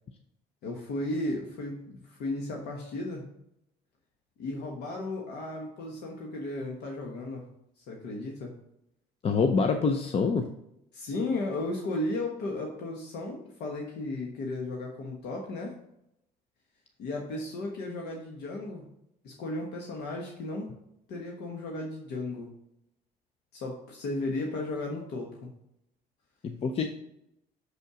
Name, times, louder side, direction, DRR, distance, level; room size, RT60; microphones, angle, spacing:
voice 1, 0.6-3.2 4.4-7.4 7.9-8.5 10.9-15.8 17.0-18.8 19.2-20.7 21.1-22.5 23.5-25.5, left 2 dB, 75° left, 0 dB, 1.2 m, -35 dB
voice 2, 9.2-10.5 26.4-26.9, left 4 dB, 35° left, 7 dB, 0.5 m, -25 dB
6.4 x 5.4 x 4.9 m, 0.82 s
cardioid pair, 110°, 17 cm